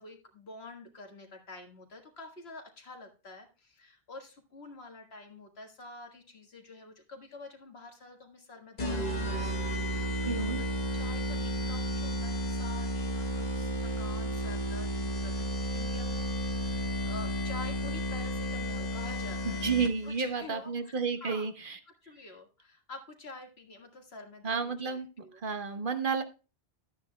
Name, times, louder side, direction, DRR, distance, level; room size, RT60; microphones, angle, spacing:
voice 1, 0.0-10.6 10.9-21.5 22.0-24.6 24.8-25.7, left 3 dB, 85° left, 3 dB, 1.9 m, -48 dB
sound 1, 8.8-20.2, equal, 45° left, 1.2 m, -32 dB
voice 2, 10.3-10.6 19.4-21.8 24.4-25.1 25.4-26.2, right 5 dB, 60° right, 8 dB, 1.1 m, -31 dB
12.0 x 9.5 x 2.2 m, 0.31 s
omnidirectional pair, 1.0 m